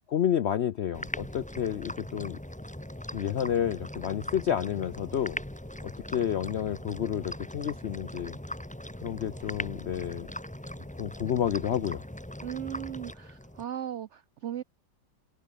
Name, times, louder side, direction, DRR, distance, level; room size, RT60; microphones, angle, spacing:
voice 1, 0.1-2.4 3.1-5.4 5.8-8.4 9.0-10.3 11.0-12.0, left 9 dB, 75° left, 0.6 m, -30 dB
sound 1, 0.9-13.6, left 1 dB, 5° left, 1.5 m, -40 dB
voice 2, 12.4-14.6, right 10 dB, 85° right, 0.6 m, -37 dB
omnidirectional pair, 1.9 m